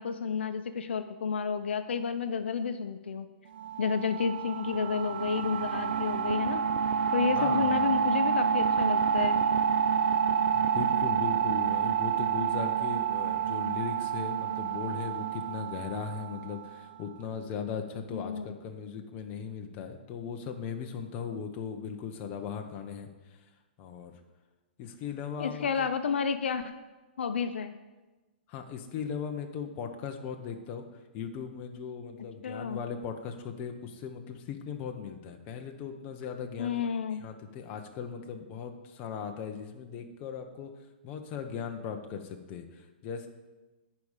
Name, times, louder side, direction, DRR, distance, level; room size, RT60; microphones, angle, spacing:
voice 1, 0.0-3.3 3.8-6.6 7.1-9.4 18.1-18.6 25.4-26.7 27.2-27.8 32.4-32.8 36.6-37.2, left 6 dB, 75° left, 10 dB, 0.7 m, -31 dB
sound 1, 3.6-17.0, right 7 dB, 60° right, 0.5 m, -28 dB
voice 2, 7.3-7.9 10.5-23.1 23.8-24.1 24.8-25.9 28.5-30.8 31.1-36.9 37.2-40.7 41.0-43.3, left 7 dB, 30° left, 5 dB, 1.0 m, -38 dB
10.5 x 5.0 x 7.4 m, 1.2 s
hypercardioid pair, 150°, 6 cm